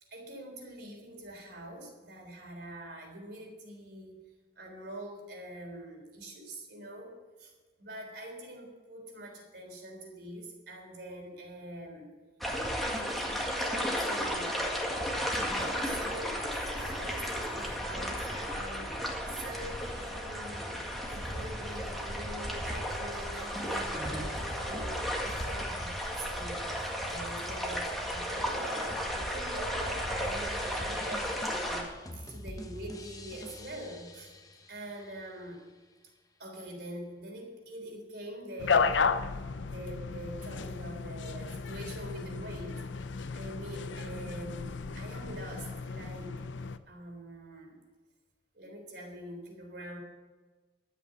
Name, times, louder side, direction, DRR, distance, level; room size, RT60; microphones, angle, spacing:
voice 1, 0.1-4.2 4.6-7.5 7.8-12.1 12.8-14.7 15.3-19.0 19.3-31.9 32.1-34.3 34.7-35.6 36.4-39.1 39.6-42.8 43.3-46.4 46.9-47.8 48.5-50.0, right 1 dB, 60° right, 1 dB, 3.6 m, -44 dB
sound 1, 12.4-31.8, equal, ahead, 1.8 m, -34 dB
sound 2, 30.6-35.5, left 1 dB, 20° left, 0.9 m, -46 dB
sound 3, 38.6-46.8, left 5 dB, 90° left, 0.6 m, -33 dB
12.5 x 8.3 x 7.6 m, 1.3 s
head